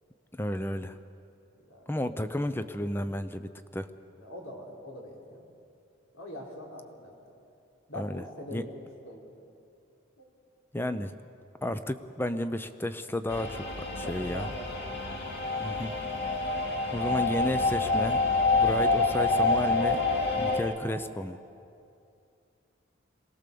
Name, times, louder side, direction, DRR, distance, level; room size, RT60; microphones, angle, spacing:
voice 1, 0.3-0.9 1.9-3.9 8.0-8.2 8.5-8.6 10.7-11.1 11.6-13.6 14.0-14.5 15.6-15.9 16.9-18.2 18.5-20.0 20.4-21.4, left 1 dB, 10° left, 11 dB, 0.6 m, -32 dB
voice 2, 1.7-2.0 4.1-5.4 6.1-7.1 7.9-8.7 9.0-9.3 10.2-10.3 14.0-15.0 15.6-15.8, equal, 80° left, -1 dB, 4.3 m, -43 dB
sound 1, 13.3-20.6, left 3 dB, 55° left, 2.4 m, -27 dB
24.0 x 18.5 x 6.9 m, 2.6 s
head